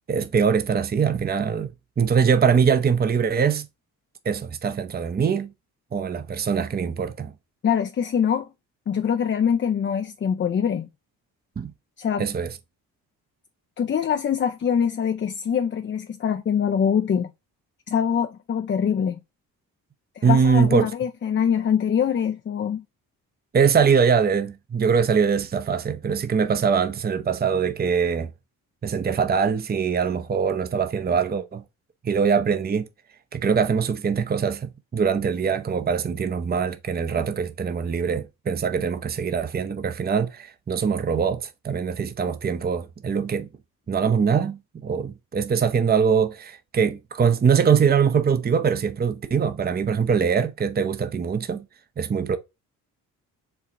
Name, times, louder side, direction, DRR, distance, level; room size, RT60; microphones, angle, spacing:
voice 1, 0.1-1.7 2.0-3.7 4.2-5.5 5.9-7.3 11.6-11.7 12.2-12.5 20.2-20.9 23.5-28.3 28.8-31.6 32.0-32.9 33.3-43.5 43.9-51.6 52.0-52.4, right 6 dB, 25° right, 0.6 m, -22 dB
voice 2, 7.6-8.5 8.9-10.9 12.0-12.3 13.8-17.3 17.9-19.2 20.2-22.8, left 8 dB, 30° left, 0.4 m, -24 dB
4.6 x 2.4 x 3.8 m
supercardioid pair, 55°, 40 cm